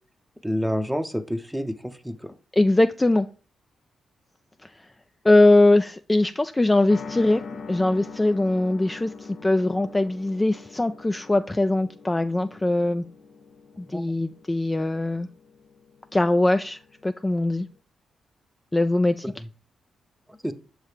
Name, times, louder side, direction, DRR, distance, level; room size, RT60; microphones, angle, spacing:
voice 1, 0.4-1.8 2.0-2.3 13.9-14.0 20.4-20.5, equal, 5° right, 0.7 m, -28 dB
voice 2, 2.5-3.3 4.6-4.7 5.2-13.0 13.8-15.3 16.1-17.7 18.7-19.3, left 2 dB, 20° left, 0.3 m, -21 dB
sound 1, 6.9-17.7, left 4 dB, 60° left, 0.6 m, -43 dB
6.4 x 3.2 x 4.6 m
hypercardioid pair, 40°, 0 cm